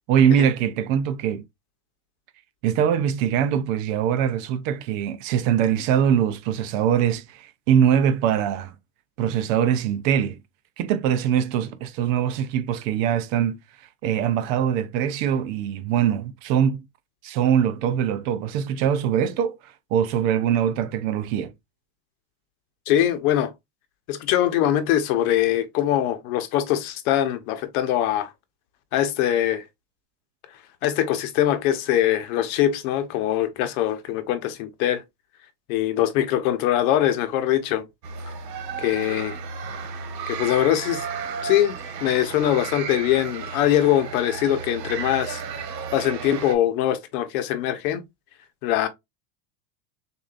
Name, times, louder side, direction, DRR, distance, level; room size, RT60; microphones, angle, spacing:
voice 1, 0.1-1.4 2.6-8.7 9.2-10.4 10.8-13.6 14.0-16.8 17.2-21.5, right 9 dB, 50° right, 0.7 m, -22 dB
voice 2, 22.9-23.5 24.1-28.3 28.9-29.6 30.8-35.0 35.7-37.9 38.8-39.4 40.3-41.1 41.4-45.4 45.9-48.0 48.6-48.9, left 12 dB, 60° left, 1.0 m, -22 dB
sound 1, 38.0-46.5, right 6 dB, 80° right, 1.4 m, -33 dB
6.7 x 2.7 x 2.5 m
supercardioid pair, 130°, 49 cm